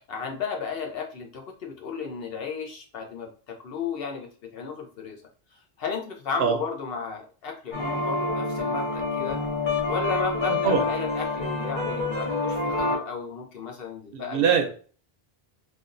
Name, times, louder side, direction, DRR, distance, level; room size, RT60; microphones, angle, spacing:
voice 1, 0.0-5.2 5.8-9.4 9.9-14.5, left 5 dB, 70° left, 2 dB, 0.9 m, -34 dB
sound 1, 7.7-13.0, left 3 dB, 50° left, 1.2 m, -27 dB
voice 2, 14.1-14.7, right 7 dB, 70° right, 5 dB, 0.8 m, -22 dB
3.5 x 2.4 x 2.5 m, 0.41 s
omnidirectional pair, 1.0 m